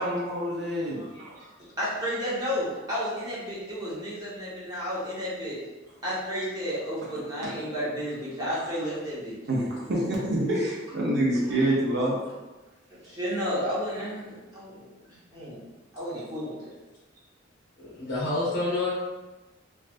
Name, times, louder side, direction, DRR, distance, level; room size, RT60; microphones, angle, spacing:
voice 1, 0.0-1.0 9.5-12.2, right 1 dB, 60° right, -4 dB, 0.6 m, -26 dB
voice 2, 1.0-1.4 1.8-5.6 6.0-9.4 11.6-11.7 13.0-15.7 15.9-16.7, equal, 20° right, -8 dB, 1.0 m, -32 dB
voice 3, 17.8-18.9, left 2 dB, 60° left, -8 dB, 0.9 m, -28 dB
3.1 x 2.4 x 2.5 m, 1.1 s
head